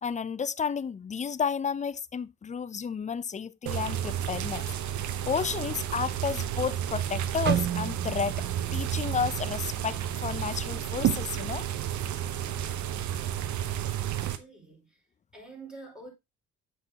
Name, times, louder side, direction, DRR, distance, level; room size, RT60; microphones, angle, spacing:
voice 1, 0.0-4.6 5.3-8.4 8.7-11.7, left 6 dB, 25° left, 0.4 m, -32 dB
sound 1, 3.7-14.4, right 10 dB, 75° right, 0.8 m, -31 dB
sound 2, 7.5-11.5 11.8-12.1 12.8-13.1, right 10 dB, 35° right, 0.4 m, -34 dB
voice 2, 13.8-15.0 15.3-16.1, right 3 dB, 5° right, 4.4 m, -47 dB
7.7 x 6.5 x 2.8 m
cardioid pair, 90°, 30 cm